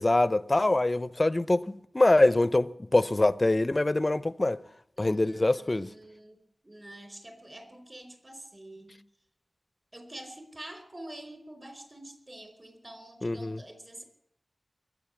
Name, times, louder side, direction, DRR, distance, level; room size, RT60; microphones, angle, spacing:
voice 1, 0.0-4.6 5.0-5.9 13.2-13.6, left 2 dB, 35° left, 0.6 m, -24 dB
voice 2, 5.0-6.4 6.6-9.0 9.9-14.0, right 1 dB, 30° right, 4.7 m, -46 dB
22.5 x 8.4 x 7.2 m
cardioid pair, 40°, 0 cm